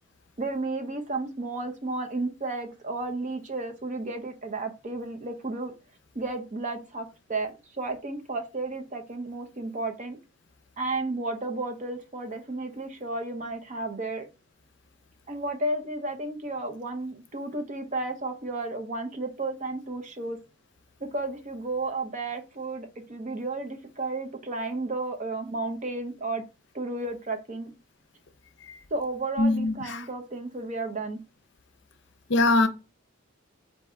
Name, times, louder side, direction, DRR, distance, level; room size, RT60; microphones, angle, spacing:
voice 1, 0.4-5.7 6.1-10.2 10.8-14.3 15.3-20.4 21.1-26.4 26.7-27.7 28.9-31.2, right 2 dB, 35° right, 0.7 m, -33 dB
voice 2, 29.4-30.1 32.3-32.7, left 2 dB, 60° left, 0.6 m, -23 dB
4.5 x 2.7 x 3.6 m
head